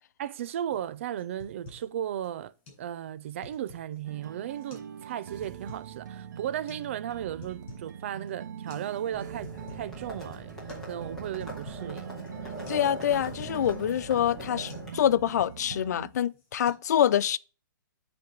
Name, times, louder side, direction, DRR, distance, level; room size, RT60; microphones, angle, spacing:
voice 1, 0.2-2.5 2.8-10.5 10.9-12.1, right 10 dB, 40° right, 0.4 m, -35 dB
sound 1, 0.7-0.9 1.2-1.9 2.2-2.3 2.7-2.9 3.2-4.0 4.6-4.9 5.2-5.9 6.7-6.8 7.2-7.9 8.2-8.3 8.7-8.9 9.2-9.9 10.3-10.4 10.7-10.9 11.2-11.9 12.3-12.4 12.7-12.9 13.1-13.9 14.3-14.4 14.7-14.9 15.2-16.0 16.3-16.7, left 2 dB, 35° left, 4.3 m, -49 dB
sound 2, 4.1-16.1, right 8 dB, 60° right, 0.9 m, -43 dB
Livestock farm animals working animals, 9.1-14.9, right 1 dB, 5° left, 2.1 m, -41 dB
voice 2, 12.7-17.4, left 10 dB, 55° left, 0.4 m, -26 dB
8.1 x 3.3 x 6.2 m
hypercardioid pair, 165°, 11 cm